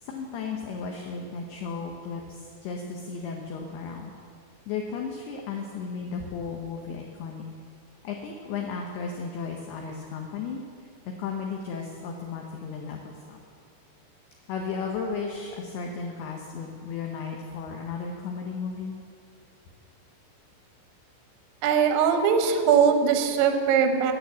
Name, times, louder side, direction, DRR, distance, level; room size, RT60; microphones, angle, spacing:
voice 1, 0.0-4.1 4.7-7.4 8.0-10.6 11.2-13.4 14.5-19.0, left 5 dB, 90° left, 1 dB, 2.2 m, -34 dB
voice 2, 21.6-24.1, right 7 dB, 80° right, 5 dB, 2.4 m, -21 dB
11.0 x 6.5 x 8.2 m, 2.3 s
omnidirectional pair, 5.7 m